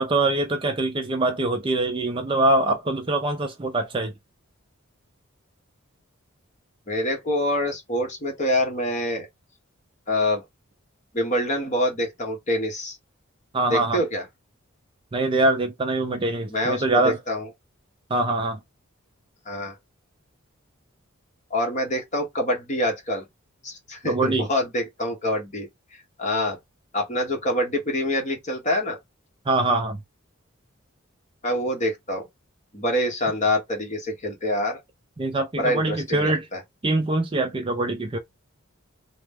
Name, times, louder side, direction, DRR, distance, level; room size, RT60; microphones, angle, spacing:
voice 1, 0.0-4.1 13.5-14.0 15.1-17.2 18.1-18.6 24.0-24.5 29.5-30.0 35.2-36.5 36.8-38.2, right 2 dB, 25° right, 0.4 m, -23 dB
voice 2, 6.9-9.3 10.1-10.4 11.1-13.0 13.7-14.2 16.5-17.5 19.5-19.7 21.5-23.2 23.6-25.7 26.2-26.6 26.9-29.0 31.4-32.3 32.7-34.8 35.6-36.6, left 1 dB, 35° left, 1.1 m, -26 dB
3.0 x 2.1 x 3.4 m
head